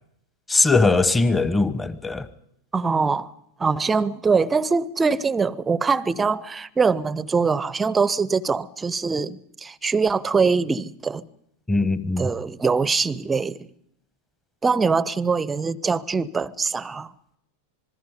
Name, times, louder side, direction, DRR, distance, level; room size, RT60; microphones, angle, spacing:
voice 1, 0.5-2.3 11.7-12.3, left 3 dB, 10° left, 1.2 m, -20 dB
voice 2, 2.7-3.3 3.6-11.3 12.2-13.7 14.6-17.1, right 4 dB, 15° right, 0.8 m, -23 dB
26.5 x 20.5 x 5.4 m
figure-of-eight pair, 90°, 0 cm